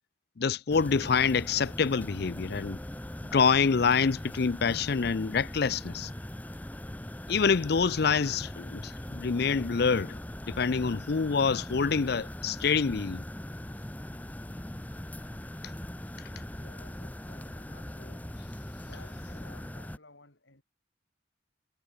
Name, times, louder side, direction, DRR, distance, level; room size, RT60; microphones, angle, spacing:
voice 1, 0.4-2.8 3.3-6.1 7.3-10.2 10.5-13.2, left 5 dB, 55° left, 0.5 m, -26 dB
sound 1, 0.7-20.0, left 1 dB, 10° left, 0.6 m, -40 dB
voice 2, 16.5-18.4 18.8-20.6, left 2 dB, 75° left, 6.1 m, -56 dB
head